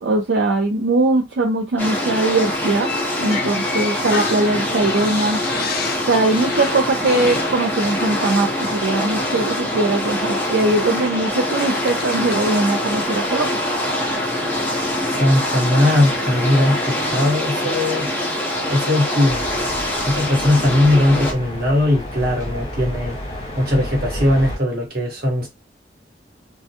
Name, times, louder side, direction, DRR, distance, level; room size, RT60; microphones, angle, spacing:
voice 1, 0.0-2.9 3.2-5.4 6.1-13.6, right 2 dB, 75° right, 0.5 m, -20 dB
sound 1, 1.8-21.3, left 1 dB, 10° left, 0.7 m, -24 dB
sound 2, 2.8-8.3 8.6-8.8 10.0-10.2 10.8-12.5, left 5 dB, 60° left, 0.5 m, -32 dB
voice 2, 15.1-18.1 18.7-19.5 20.0-23.2 23.6-25.5, left 1 dB, 60° right, 1.2 m, -19 dB
sound 3, 19.2-24.6, equal, 30° left, 1.1 m, -31 dB
2.3 x 2.1 x 2.8 m
head